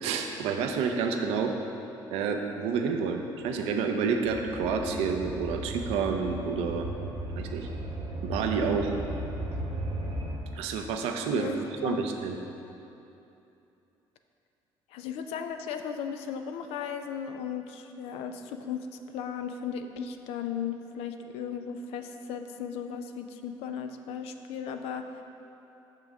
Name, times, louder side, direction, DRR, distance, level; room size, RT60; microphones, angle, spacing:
voice 1, 0.0-1.5 2.1-6.9 7.4-7.7 8.2-8.9 10.5-12.4, right 5 dB, 80° right, 4 dB, 0.5 m, -29 dB
sound 1, 4.3-10.3, right 1 dB, 65° right, 1.0 m, -36 dB
voice 2, 11.3-12.1 14.9-25.2, left 7 dB, 80° left, 7 dB, 0.4 m, -36 dB
6.1 x 5.7 x 3.5 m, 2.9 s
supercardioid pair, 75°, 10 cm